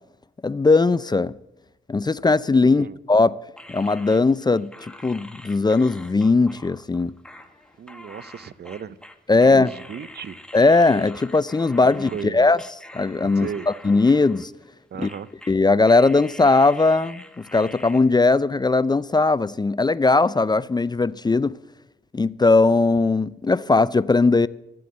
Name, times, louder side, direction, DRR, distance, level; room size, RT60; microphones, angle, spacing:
voice 1, 0.4-1.3 1.9-3.4 3.7-4.7 5.0-7.1 9.3-9.7 10.5-12.6 12.9-13.5 13.8-14.5 15.0-15.1 15.5-21.6 22.1-24.5, left 3 dB, 20° left, 0.4 m, -19 dB
voice 2, 2.6-3.0 7.8-9.0 9.4-10.4 11.8-12.5 13.2-13.7 14.9-15.3, right 7 dB, 60° right, 0.6 m, -35 dB
sound 1, 3.6-12.3 12.6-14.7 15.0-15.6 15.9-18.0, left 1 dB, 5° left, 1.6 m, -45 dB
13.0 x 7.7 x 8.5 m
cardioid pair, 55°, 19 cm